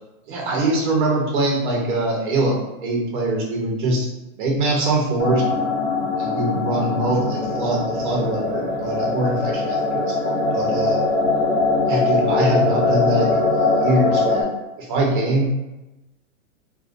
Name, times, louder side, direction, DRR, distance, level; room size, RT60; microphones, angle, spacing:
voice 1, 0.3-4.1 4.4-5.4 6.2-11.0 11.8-14.5 14.8-15.5, right 1 dB, 35° right, -1 dB, 0.7 m, -23 dB
sound 1, 5.2-14.4, left 3 dB, 85° left, 0.9 m, -21 dB
2.5 x 2.2 x 2.4 m, 0.99 s
hypercardioid pair, 160°, 41 cm